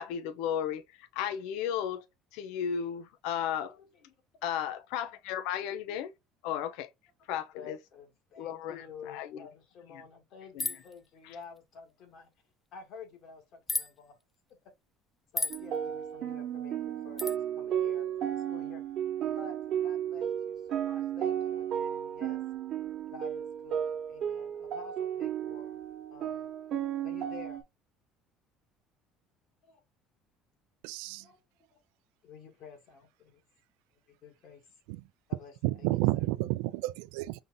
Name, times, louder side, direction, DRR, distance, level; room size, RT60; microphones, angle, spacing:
voice 1, 0.0-2.1 2.3-3.8 4.4-6.1 6.4-6.9 7.3-7.8 8.4-9.5 10.6-10.7 11.2-11.3, left 9 dB, 80° left, 0.5 m, -34 dB
voice 2, 3.7-4.2 7.3-12.3 12.7-14.2 14.5-14.6 15.3-18.8 19.3-22.4 23.1-25.8 26.1-26.5 27.0-27.6 29.6-29.8 31.2-31.4 31.7-31.8 32.2-33.4 34.1-34.6 35.3-35.5 35.8-35.9, left 5 dB, 60° left, 1.9 m, -50 dB
sound 1, 10.6-10.9 13.7-13.9 15.4-15.6 17.2-17.4, left 2 dB, 15° left, 0.6 m, -32 dB
sound 2, 15.5-27.6, right 10 dB, 55° right, 1.0 m, -34 dB
voice 3, 30.8-31.3 34.9-35.0 35.6-37.4, right 19 dB, 85° right, 0.3 m, -31 dB
5.5 x 2.6 x 3.7 m
supercardioid pair, 100°, 0 cm